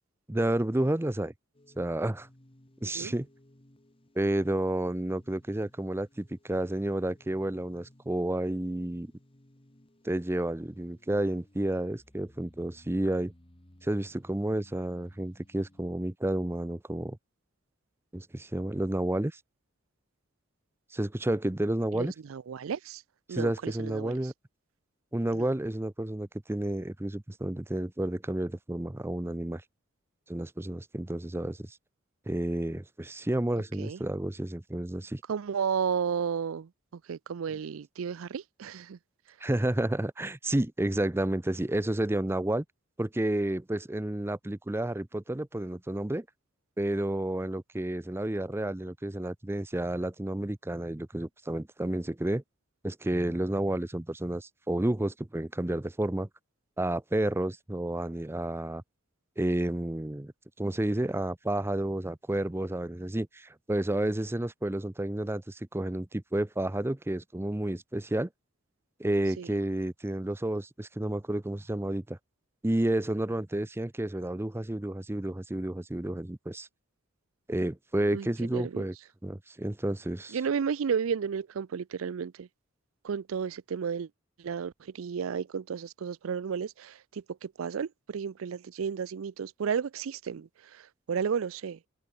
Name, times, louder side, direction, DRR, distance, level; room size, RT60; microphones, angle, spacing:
voice 1, 0.3-1.3 1.8-2.3 2.8-3.3 4.2-9.1 10.0-13.3 13.8-17.2 18.1-19.4 20.9-22.1 23.3-24.3 25.1-29.6 30.3-31.8 32.3-35.2 39.4-42.6 43.0-46.3 46.8-52.4 52.8-56.3 56.8-58.8 59.4-60.3 60.6-68.3 69.0-72.2 72.6-76.7 77.5-78.9 79.2-80.4, right 1 dB, 10° right, 0.6 m, -31 dB
sound 1, 1.5-15.8, left 1 dB, 25° left, 1.8 m, -60 dB
voice 2, 21.9-23.0 23.3-24.1 25.3-25.5 33.8-34.0 35.3-36.7 37.1-39.0 69.4-69.5 78.1-78.3 78.5-78.8 80.3-82.5 83.0-84.1 84.4-90.8 91.1-91.8, right 6 dB, 85° right, 0.4 m, -33 dB
open air
head